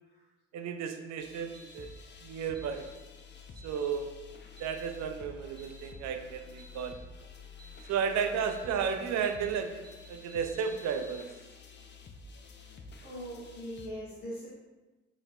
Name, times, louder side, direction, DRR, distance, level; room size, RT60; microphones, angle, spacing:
voice 1, 0.5-1.9 2.2-2.9 3.6-4.2 4.6-7.0 7.9-9.8 10.1-11.3, right 7 dB, 55° right, 7 dB, 0.5 m, -33 dB
sound 1, 1.2-13.9, left 4 dB, 35° left, 0.5 m, -50 dB
sound 2, 1.5-1.9 2.6-2.9 3.6-3.9 4.6-4.9 5.6-5.9 6.6-6.9 7.6-7.9 8.5-8.8 9.2-9.5 9.8-11.2, right 1 dB, 5° left, 1.0 m, -54 dB
voice 2, 13.0-14.5, equal, 80° left, -7 dB, 0.9 m, -41 dB
4.2 x 2.9 x 2.5 m, 1.2 s
hypercardioid pair, 40°, 32 cm